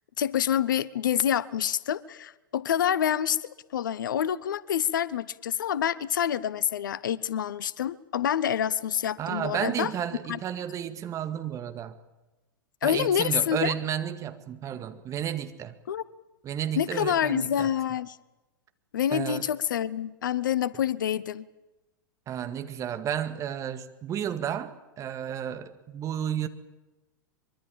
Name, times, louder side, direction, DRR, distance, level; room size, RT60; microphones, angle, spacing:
voice 1, 0.2-9.9 10.3-10.4 12.8-13.7 15.9-16.0 16.8-18.2 18.9-21.4, left 9 dB, 65° left, 20 dB, 0.9 m, -27 dB
voice 2, 9.2-11.9 12.8-15.8 16.4-17.7 19.1-19.5 22.3-26.5, right 9 dB, 30° right, 9 dB, 1.9 m, -32 dB
24.0 x 23.5 x 7.4 m, 1.1 s
figure-of-eight pair, 95°, 11 cm